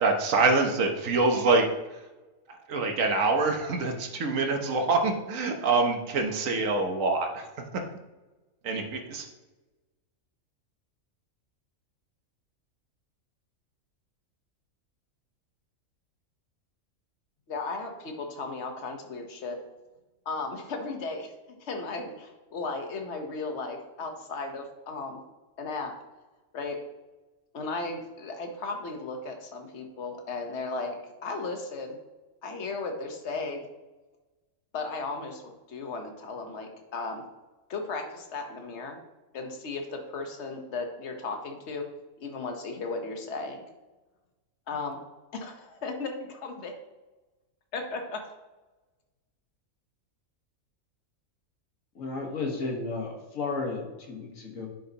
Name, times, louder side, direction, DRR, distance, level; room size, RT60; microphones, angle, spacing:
voice 1, 0.0-1.7 2.7-7.4 8.6-9.3, right 3 dB, 75° right, 3 dB, 1.4 m, -25 dB
voice 2, 17.5-19.6 20.2-21.3 21.6-25.2 25.6-25.9 26.5-26.8 27.5-31.0 31.2-32.0 32.4-33.7 34.7-35.4 35.7-37.2 37.7-39.0 39.3-41.9 42.2-43.7 44.7-45.0 45.3-46.7 47.7-48.2, left 3 dB, 60° left, 4 dB, 1.4 m, -35 dB
voice 3, 52.0-54.7, left 3 dB, 80° left, 1 dB, 1.8 m, -33 dB
10.0 x 6.5 x 2.9 m, 1.1 s
omnidirectional pair, 1.4 m